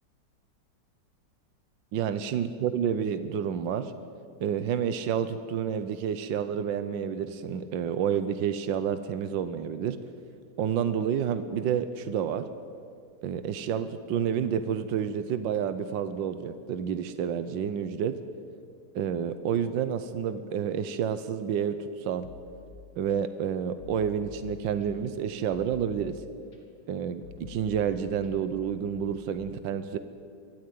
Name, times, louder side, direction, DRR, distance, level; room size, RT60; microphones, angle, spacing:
voice 1, 1.9-3.9 4.4-10.0 10.6-12.5 13.2-18.2 18.9-22.3 23.0-26.2 26.9-30.0, right 8 dB, 85° right, 11 dB, 1.6 m, -29 dB
sound 1, 22.2-23.1 23.8-25.1 25.5-26.6 27.2-29.1, left 7 dB, 60° left, 3.9 m, -48 dB
23.0 x 13.5 x 9.3 m, 2.4 s
omnidirectional pair, 2.0 m